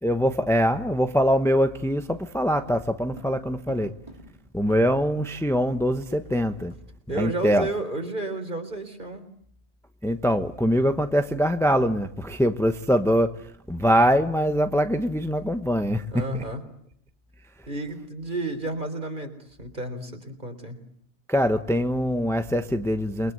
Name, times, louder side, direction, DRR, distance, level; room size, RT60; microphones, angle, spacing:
voice 1, 0.0-3.9 4.5-6.7 7.2-7.7 10.0-13.3 13.7-16.3 21.3-23.3, equal, 5° left, 1.0 m, -23 dB
sound 1, 2.5-5.2 5.5-5.6 5.8-6.8 7.1-7.3 7.7-7.9, right 1 dB, 30° right, 5.2 m, -48 dB
voice 2, 7.1-9.3 16.1-16.6 17.7-20.8, right 2 dB, 45° right, 4.0 m, -32 dB
29.0 x 23.0 x 8.1 m
omnidirectional pair, 1.2 m